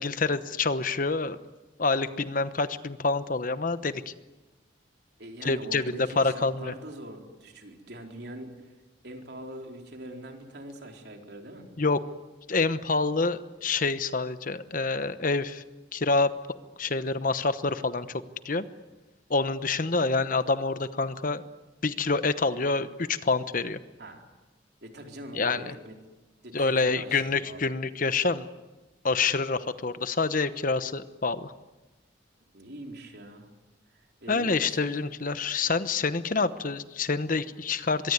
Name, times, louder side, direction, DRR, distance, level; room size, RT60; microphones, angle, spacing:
voice 1, 0.0-1.4 1.8-4.1 5.4-6.7 11.8-12.0 12.5-15.6 15.9-16.3 16.8-18.1 18.4-18.6 19.3-21.4 21.8-23.8 25.3-25.7 26.5-28.5 29.0-31.5 34.3-38.1, left 3 dB, 45° left, 13 dB, 1.0 m, -27 dB
voice 2, 5.2-8.7 9.0-11.7 24.0-24.2 24.8-25.9 26.4-27.6 32.5-33.5 33.9-35.0, right 1 dB, 60° right, 3 dB, 4.2 m, -43 dB
24.5 x 23.0 x 9.5 m, 1.1 s
head